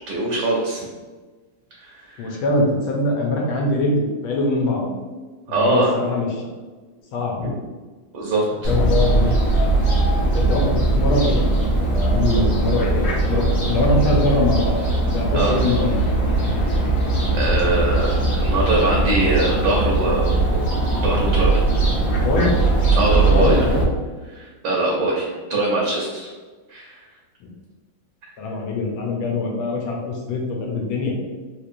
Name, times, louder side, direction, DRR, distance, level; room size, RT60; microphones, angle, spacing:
voice 1, 0.1-0.8 1.8-2.4 5.5-5.9 7.4-7.5 8.1-8.7 15.3-15.6 17.3-20.4 21.0-21.6 23.0-23.7 24.3-26.3 26.7-27.0, right 2 dB, 70° right, -3 dB, 1.3 m, -22 dB
voice 2, 2.2-5.0 5.5-6.5 7.1-7.5 8.6-9.4 10.3-14.8 15.1-16.0 22.1-22.6 23.3-23.9 27.4-27.5 28.4-31.2, left 2 dB, 80° left, -1 dB, 1.5 m, -23 dB
Fowl, 8.6-23.8, right 2 dB, 65° left, 0.6 m, -20 dB
3.6 x 3.1 x 2.4 m, 1.3 s
omnidirectional pair, 2.3 m